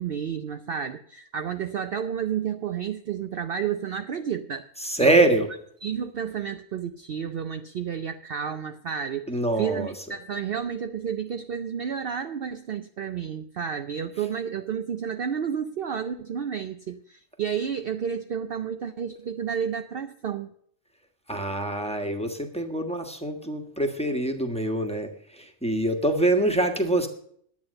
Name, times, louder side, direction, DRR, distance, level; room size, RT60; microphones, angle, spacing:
voice 1, 0.0-4.7 5.0-5.2 5.8-9.3 9.6-20.5, right 7 dB, 55° right, 8 dB, 0.7 m, -31 dB
voice 2, 4.8-5.5 9.3-9.9 21.3-27.1, right 1 dB, 5° left, 3 dB, 1.4 m, -24 dB
11.0 x 8.7 x 6.4 m, 0.65 s
omnidirectional pair, 1.3 m